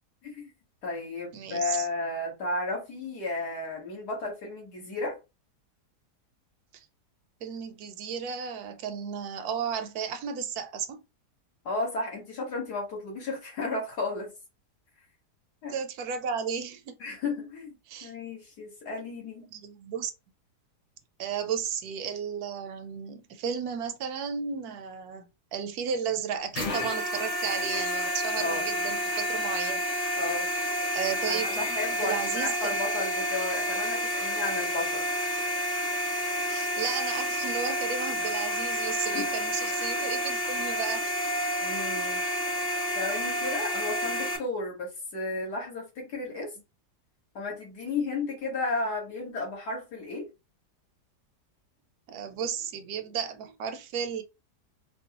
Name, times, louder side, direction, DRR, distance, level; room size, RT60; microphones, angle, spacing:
voice 1, 0.8-5.2 11.7-14.3 15.6-15.8 17.0-17.7 18.0-19.5 28.4-28.6 30.2-30.5 31.3-35.1 39.1-39.3 41.6-42.2 43.0-46.5 47.3-50.3, left 3 dB, 75° left, 2.1 m, -33 dB
voice 2, 1.3-1.9 6.7-6.8 7.4-11.0 15.7-17.0 17.9-18.1 19.5-20.1 21.2-29.8 30.9-31.7 32.0-32.8 36.5-41.1 52.1-54.2, right 7 dB, 75° right, 1.0 m, -34 dB
sound 1, 26.5-44.4, equal, 40° left, 0.5 m, -30 dB
4.3 x 2.2 x 2.8 m
omnidirectional pair, 1.7 m